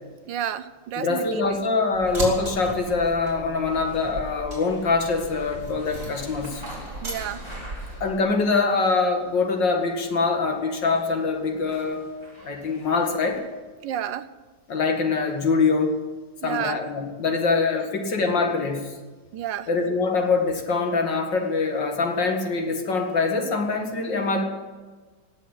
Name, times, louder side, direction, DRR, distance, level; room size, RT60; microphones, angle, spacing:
voice 1, 0.3-1.6 7.0-7.4 13.8-14.2 16.4-16.8 19.3-19.7, right 10 dB, 75° right, 13 dB, 1.4 m, -30 dB
voice 2, 1.0-6.6 8.0-12.1 12.4-13.4 14.7-16.0 16.4-19.0 19.7-24.4, left 4 dB, 70° left, 3 dB, 2.6 m, -24 dB
sound 1, 1.9-8.1, right 2 dB, 40° right, 4.3 m, -36 dB
sound 2, 3.6-13.5, equal, 15° left, 4.1 m, -46 dB
18.5 x 7.3 x 10.0 m, 1.4 s
omnidirectional pair, 2.1 m